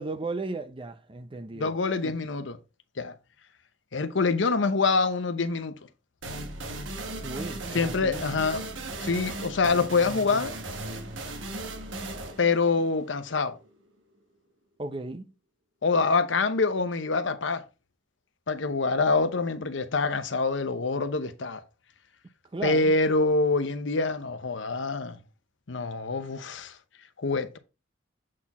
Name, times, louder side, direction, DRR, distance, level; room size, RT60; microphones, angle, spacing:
voice 1, 0.0-1.7 2.0-2.1 7.2-8.2 14.8-15.3 22.5-22.9, right 2 dB, 25° right, 0.5 m, -35 dB
voice 2, 1.5-2.6 3.0-3.1 3.9-5.8 7.7-8.6 9.0-10.5 12.4-13.6 15.8-17.6 18.5-21.6 22.6-25.2 25.7-26.8 27.2-27.6, left 4 dB, 75° left, 0.8 m, -25 dB
sound 1, 6.2-13.7, right 2 dB, 80° right, 1.2 m, -37 dB
7.5 x 4.3 x 4.1 m
head